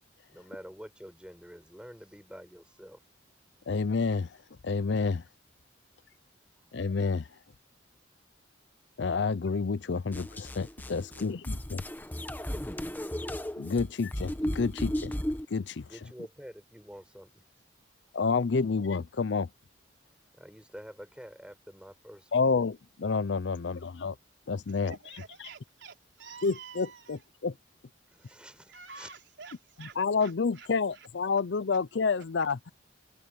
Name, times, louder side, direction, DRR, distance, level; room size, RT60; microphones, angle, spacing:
voice 1, 0.3-3.0 15.9-17.4 20.3-22.5 28.1-29.1, equal, 5° right, 5.2 m, -48 dB
voice 2, 3.7-4.3 4.6-5.2 6.7-7.3 9.0-11.8 13.6-15.1 15.5-15.9 18.1-19.5 22.3-24.2 24.5-25.0 26.4-27.5 30.0-32.7, left 4 dB, 65° left, 0.5 m, -29 dB
sound 1, 10.1-15.5, equal, 10° left, 1.0 m, -35 dB
voice 3, 23.5-23.9 24.7-27.3 28.2-28.4 28.7-31.1, right 5 dB, 70° right, 4.0 m, -50 dB
head